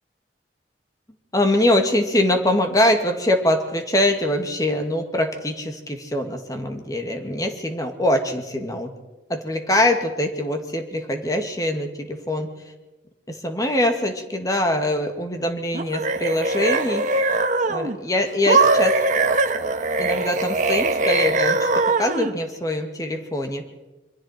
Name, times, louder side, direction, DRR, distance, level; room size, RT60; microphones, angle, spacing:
voice 1, 1.3-8.9 9.3-12.5 13.3-17.1 17.7-19.0 20.0-23.6, left 1 dB, 20° left, 5 dB, 2.1 m, -23 dB
sound 1, 15.7-18.0 18.5-22.3, right 3 dB, 45° right, 1.3 m, -21 dB
26.5 x 23.0 x 4.5 m, 1.1 s
head